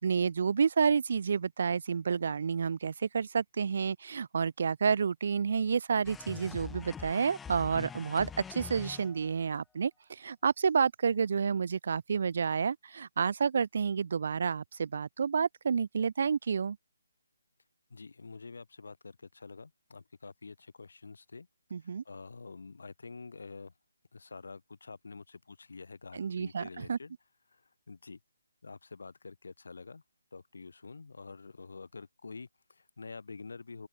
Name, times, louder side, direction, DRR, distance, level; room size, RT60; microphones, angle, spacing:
voice 1, 0.0-16.8 21.7-22.0 26.1-27.0, right 6 dB, 55° right, 0.4 m, -30 dB
sound 1, 6.0-9.4, left 7 dB, 5° left, 0.4 m, -44 dB
voice 2, 17.9-21.5 21.8-23.7 24.1-27.1 27.5-28.2 28.6-30.0 30.3-33.9, left 4 dB, 75° left, 2.7 m, -47 dB
open air
hypercardioid pair, 160°, 0 cm